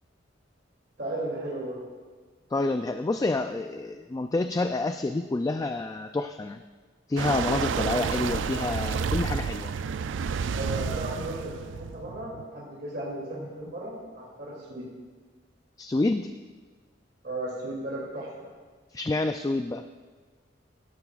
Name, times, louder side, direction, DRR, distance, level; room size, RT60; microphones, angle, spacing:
voice 1, 1.0-1.8 7.7-7.9 10.5-14.9 17.2-18.5, right 1 dB, 60° right, -4 dB, 2.7 m, -35 dB
voice 2, 2.5-6.6 7.1-9.7 15.8-16.3 18.9-19.8, left 2 dB, 20° left, 8 dB, 0.3 m, -28 dB
sound 1, 7.2-12.4, right 6 dB, 85° right, 0.4 m, -30 dB
17.0 x 12.5 x 2.4 m, 1.4 s
head